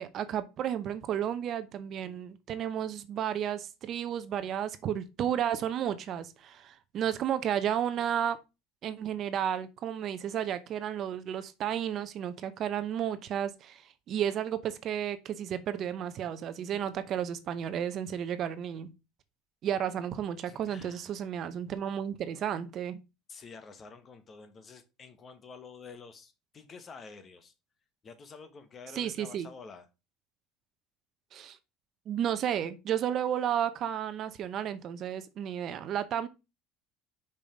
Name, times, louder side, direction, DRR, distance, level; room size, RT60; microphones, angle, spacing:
voice 1, 0.0-8.4 8.8-18.9 19.6-23.0 28.9-29.5 31.3-31.6 32.1-36.3, right 9 dB, 45° right, 0.8 m, -32 dB
voice 2, 20.5-21.1 23.3-27.5 28.0-29.9, left 5 dB, 30° left, 1.3 m, -49 dB
5.6 x 5.1 x 5.0 m
cardioid pair, 125°, 0 cm